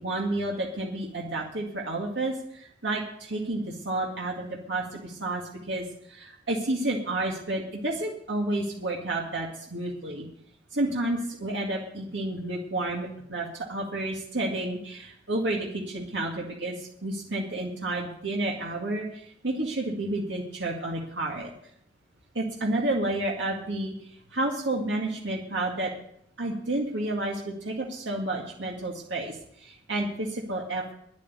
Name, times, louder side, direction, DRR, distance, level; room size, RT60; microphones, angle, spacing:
voice 1, 0.0-10.3 10.7-21.5 22.3-23.9 24.3-25.9 26.4-30.9, right 2 dB, 90° right, -1 dB, 2.2 m, -30 dB
10.5 x 8.5 x 9.4 m, 0.69 s
head